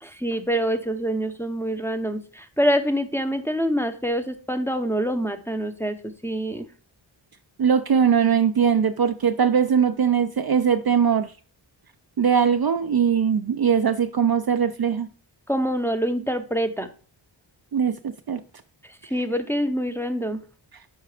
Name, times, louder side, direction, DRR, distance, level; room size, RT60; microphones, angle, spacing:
voice 1, 0.0-5.9 6.2-6.7 15.5-16.9 19.1-20.4, equal, 5° left, 0.7 m, -25 dB
voice 2, 7.6-11.3 12.2-15.1 17.7-18.4, right 7 dB, 50° right, 0.5 m, -21 dB
5.7 x 4.7 x 4.8 m
wide cardioid pair, 55°, 49 cm